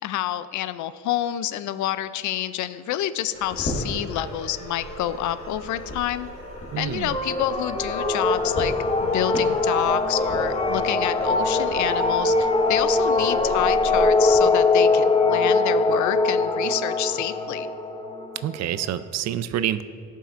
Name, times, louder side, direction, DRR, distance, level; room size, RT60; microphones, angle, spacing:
voice 1, 0.0-6.3 6.8-8.7 9.0-17.7, left 12 dB, 75° left, 14 dB, 0.4 m, -28 dB
sound 1, 3.3-14.4, equal, 45° left, 1.8 m, -36 dB
voice 2, 6.7-7.1 18.4-19.8, right 11 dB, 60° right, 13 dB, 0.4 m, -27 dB
sound 2, 7.1-18.9, left 3 dB, 20° left, 0.7 m, -22 dB
13.5 x 5.5 x 2.5 m, 2.4 s
cardioid pair, 90°, 30 cm